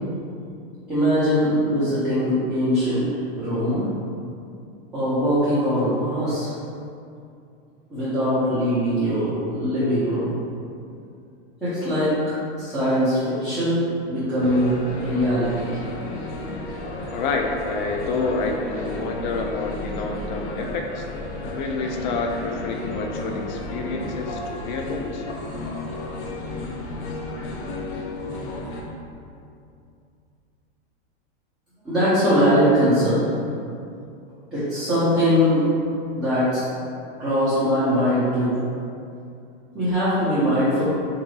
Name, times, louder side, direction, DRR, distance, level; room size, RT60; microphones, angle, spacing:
voice 1, 0.9-3.1 3.3-3.9 4.9-6.5 7.9-10.3 11.6-12.2 12.6-15.8 31.8-33.3 34.5-35.7 36.1-36.6 37.2-38.6 39.7-40.8, equal, ahead, -16 dB, 0.8 m, -21 dB
sound 1, 14.4-28.8, left 2 dB, 80° left, 0.7 m, -33 dB
voice 2, 17.1-21.1 21.5-25.2, left 3 dB, 45° left, 2 dB, 0.4 m, -28 dB
3.7 x 2.7 x 3.2 m, 2.5 s
supercardioid pair, 145°, 33 cm